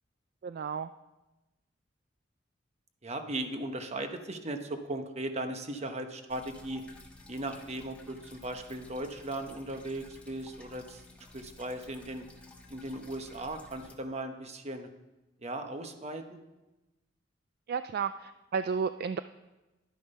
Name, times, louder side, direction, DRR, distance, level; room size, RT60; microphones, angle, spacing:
voice 1, 0.4-0.9 17.7-19.2, right 6 dB, 55° right, 12 dB, 0.3 m, -32 dB
voice 2, 3.0-6.8 7.3-11.0 11.3-12.3 12.7-14.9 15.4-16.4, right 1 dB, 35° right, 7 dB, 1.0 m, -37 dB
sound 1, 6.3-13.9, left 2 dB, 5° left, 1.3 m, -53 dB
11.5 x 9.3 x 5.4 m, 1.1 s
head